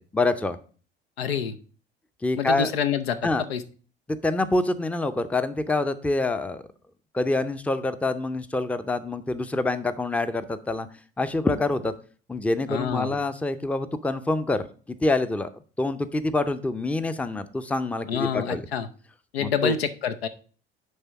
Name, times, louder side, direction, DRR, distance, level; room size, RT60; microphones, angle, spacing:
voice 1, 0.1-0.6 2.2-2.7 3.2-3.4 4.1-6.6 7.1-10.9 11.2-11.9 12.3-15.5 15.8-18.6 19.4-19.7, left 2 dB, 5° left, 12 dB, 0.5 m, -26 dB
voice 2, 1.2-1.6 2.4-3.2 3.5-3.6 12.7-13.1 18.1-18.9 19.3-20.3, left 7 dB, 85° left, 9 dB, 0.7 m, -27 dB
9.6 x 3.4 x 4.7 m, 0.40 s
hypercardioid pair, 65°, 30 cm